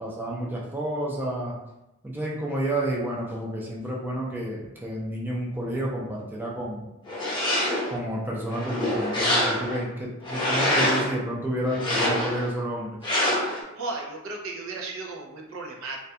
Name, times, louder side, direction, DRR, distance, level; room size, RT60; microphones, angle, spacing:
voice 1, 0.0-1.5 2.0-6.9 7.9-13.0, right 1 dB, 10° right, -4 dB, 0.4 m, -30 dB
sound 1, 7.1-8.0 8.5-9.8 10.2-11.1 11.7-12.5 13.0-13.6, left 1 dB, 25° left, 0.7 m, -25 dB
voice 2, 13.8-16.0, right 3 dB, 75° right, 0 dB, 0.5 m, -35 dB
2.3 x 2.1 x 2.7 m, 0.92 s
head